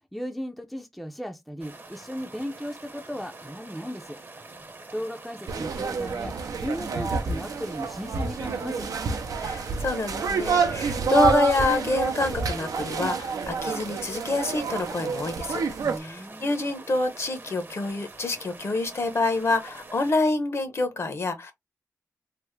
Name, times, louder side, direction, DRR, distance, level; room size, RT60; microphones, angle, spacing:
voice 1, 0.1-4.2 4.9-8.9 15.8-16.6, equal, ahead, 0.5 m, -36 dB
sound 1, 1.6-20.1, right 3 dB, 35° right, 0.7 m, -45 dB
sound 2, 5.5-16.0, right 5 dB, 85° right, 0.6 m, -28 dB
voice 2, 9.4-15.6 16.0-21.5, left 3 dB, 50° left, 0.8 m, -27 dB
3.4 x 2.0 x 3.2 m
wide cardioid pair, 100°, 6 cm